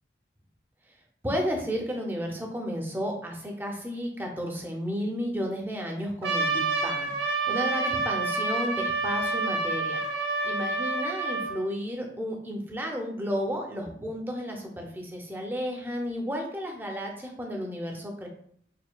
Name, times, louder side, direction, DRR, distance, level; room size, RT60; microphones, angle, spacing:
voice 1, 1.2-18.3, equal, 10° right, 1 dB, 0.5 m, -33 dB
Trumpet, 6.2-11.6, right 3 dB, 75° right, 0.7 m, -28 dB
4.3 x 2.6 x 2.2 m, 0.64 s
head